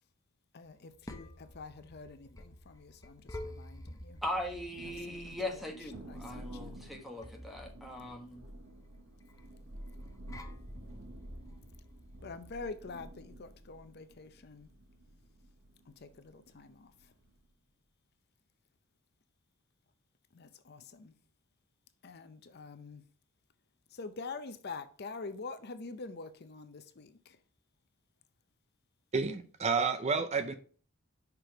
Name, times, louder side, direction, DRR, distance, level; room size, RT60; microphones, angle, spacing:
voice 1, 0.5-4.2 4.8-5.7 6.0-6.7 12.2-14.7 15.9-16.9 20.3-21.1 22.0-23.0 23.9-27.4, left 4 dB, 50° left, 0.6 m, -46 dB
sound 1, 0.7-12.6, left 1 dB, 15° left, 0.8 m, -51 dB
voice 2, 4.2-8.4, left 1 dB, ahead, 1.2 m, -39 dB
Thunder, 4.3-17.5, right 1 dB, 75° right, 1.4 m, -51 dB
voice 3, 29.1-30.6, right 4 dB, 35° right, 0.5 m, -30 dB
6.0 x 5.1 x 4.7 m
head